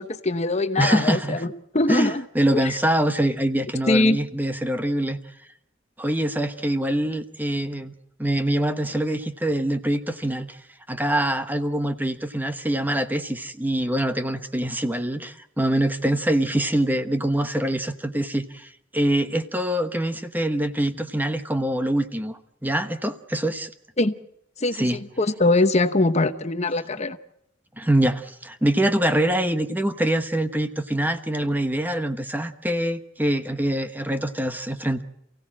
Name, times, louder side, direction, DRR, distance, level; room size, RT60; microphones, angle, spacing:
voice 1, 0.0-2.2 2.6-2.7 3.9-4.2 24.0-24.1 24.6-24.9 25.2-27.2, left 2 dB, 35° left, 10 dB, 1.0 m, -22 dB
voice 2, 0.8-1.5 1.9-5.2 6.0-7.9 8.2-10.6 10.9-23.7 24.7-25.0 27.8-35.0, right 1 dB, 10° right, 9 dB, 1.1 m, -24 dB
28.5 x 16.5 x 7.5 m, 0.79 s
head